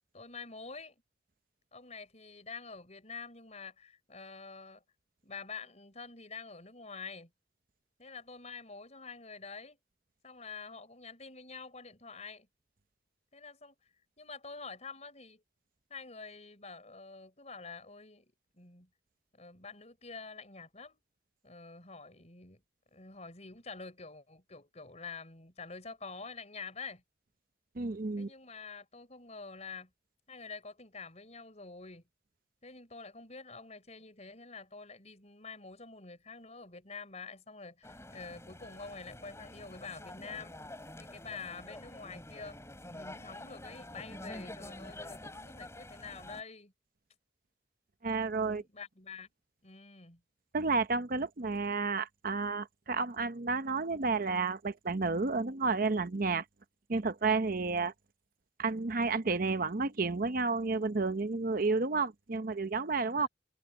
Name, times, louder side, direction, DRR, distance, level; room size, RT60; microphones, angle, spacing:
voice 1, 0.1-0.9 1.7-4.8 5.2-7.3 8.0-9.8 10.2-12.5 13.3-13.8 14.2-15.4 15.9-18.9 19.3-21.0 21.4-22.6 22.9-27.0 28.2-29.9 30.3-32.1 32.6-40.5 41.0-42.6 42.8-46.7 48.4-49.3 49.6-50.2 63.2-63.3, left 4 dB, 40° left, 5.9 m, -47 dB
voice 2, 27.8-28.3 48.0-48.6 50.5-56.4 56.9-57.9 58.6-63.3, right 4 dB, 55° right, 0.8 m, -31 dB
sound 1, 37.8-46.4, left 1 dB, 15° left, 6.8 m, -47 dB
head